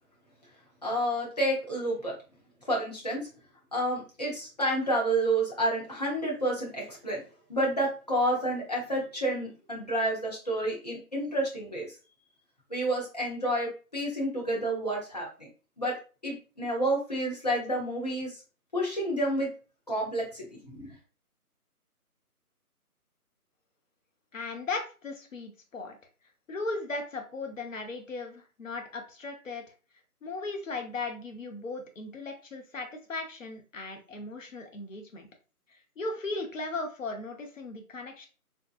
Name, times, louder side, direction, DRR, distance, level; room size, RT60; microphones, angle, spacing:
voice 1, 0.8-2.1 2.7-3.3 3.7-7.2 7.5-11.9 12.7-15.5 15.8-16.0 16.2-18.4 18.7-19.5 19.9-20.9, right 1 dB, 25° left, -3 dB, 0.7 m, -29 dB
voice 2, 24.3-26.0 26.5-29.6 30.2-35.3 35.7-38.3, left 3 dB, 55° left, 4 dB, 0.8 m, -37 dB
3.6 x 2.7 x 2.3 m, 0.35 s
figure-of-eight pair, 165°, 45 cm